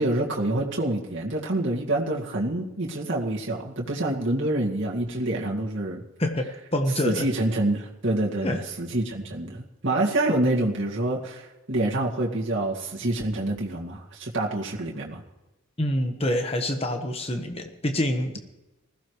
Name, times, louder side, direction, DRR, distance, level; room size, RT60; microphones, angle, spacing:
voice 1, 0.0-6.0 7.0-15.2, right 1 dB, 60° right, -3 dB, 2.1 m, -27 dB
voice 2, 6.2-7.3 8.4-8.6 15.8-18.4, left 1 dB, 30° left, 5 dB, 1.3 m, -26 dB
20.0 x 15.0 x 3.2 m, 1.0 s
head